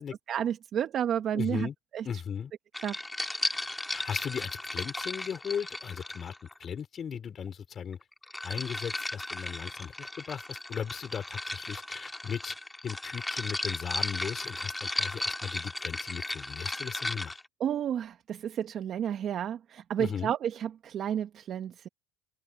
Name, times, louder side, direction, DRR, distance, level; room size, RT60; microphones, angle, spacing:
voice 1, 0.3-2.1 2.8-2.9 17.6-21.9, right 9 dB, 45° right, 1.4 m, -31 dB
voice 2, 1.3-1.7 2.0-2.5 3.9-6.3 6.6-8.0 8.4-12.5 12.8-17.4 20.0-20.3, left 7 dB, 35° left, 4.2 m, -37 dB
sound 1, 2.7-6.6 7.9-17.4, left 1 dB, 5° left, 2.6 m, -35 dB
open air
supercardioid pair, 115°, 0 cm